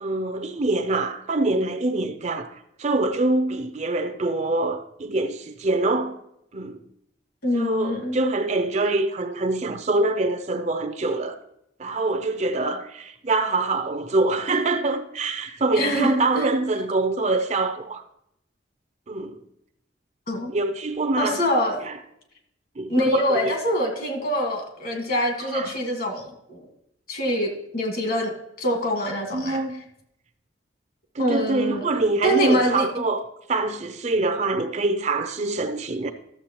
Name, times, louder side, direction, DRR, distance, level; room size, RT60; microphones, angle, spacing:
voice 1, 0.0-6.2 6.5-6.9 7.5-11.4 11.8-18.0 19.1-19.4 20.5-21.4 21.8-22.0 22.8-23.5 25.5-25.7 29.3-29.8 31.1-36.1, right 2 dB, 35° right, 0.5 m, -25 dB
voice 2, 7.4-8.2 15.8-16.1 16.3-16.5 20.3-20.5 21.2-21.8 22.9-26.6 27.1-28.3 28.6-29.6 31.2-31.9 32.2-32.9, equal, 50° left, 1.7 m, -24 dB
13.0 x 7.1 x 2.9 m
head